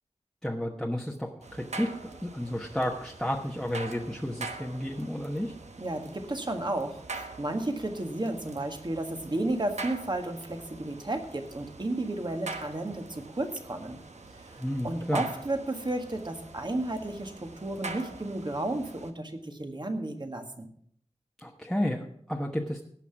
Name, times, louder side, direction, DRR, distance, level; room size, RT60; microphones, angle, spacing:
voice 1, 0.4-5.5 14.6-15.2 21.4-22.8, equal, 5° left, -1 dB, 1.1 m, -32 dB
sound 1, 1.4-19.1, right 3 dB, 80° right, 1.1 m, -44 dB
voice 2, 5.8-14.0 14.4-20.7, right 1 dB, 40° right, 5 dB, 1.7 m, -33 dB
17.5 x 5.9 x 5.8 m, 0.65 s
wide cardioid pair, 60°, 11 cm